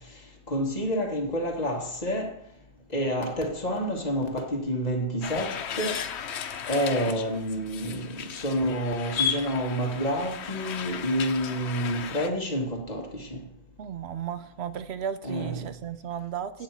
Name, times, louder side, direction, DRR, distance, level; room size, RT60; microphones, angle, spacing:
voice 1, 0.5-2.3 2.9-6.0 6.7-13.3 15.2-15.6, equal, 40° left, 1.7 m, -28 dB
sound 1, 5.2-12.3, left 8 dB, 80° left, 1.0 m, -35 dB
voice 2, 13.8-16.6, right 9 dB, 75° right, 0.9 m, -34 dB
8.6 x 4.5 x 7.1 m
omnidirectional pair, 1.1 m